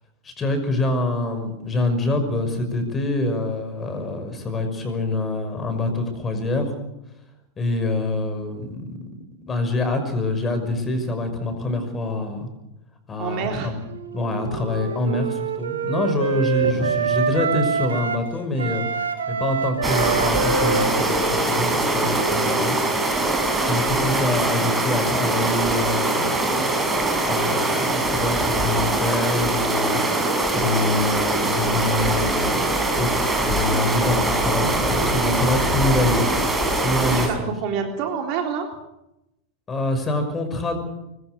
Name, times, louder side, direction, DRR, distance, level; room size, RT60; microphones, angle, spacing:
voice 1, 0.2-6.7 7.6-9.0 9.5-12.5 13.1-13.8 14.1-22.8 23.6-26.6 27.2-30.1 30.5-37.5 39.7-40.8, left 2 dB, 20° left, 7 dB, 5.9 m, -25 dB
voice 2, 13.2-13.7 16.6-16.9 37.1-38.7, right 7 dB, 45° right, 3 dB, 3.6 m, -28 dB
Wind instrument woodwind instrument, 13.9-18.3 18.6-23.1, right 5 dB, 70° right, 2.4 m, -26 dB
sound 1, 19.8-37.3, right 2 dB, 10° right, 6.2 m, -22 dB
25.0 x 21.5 x 6.7 m, 0.89 s
figure-of-eight pair, 90°, 0 cm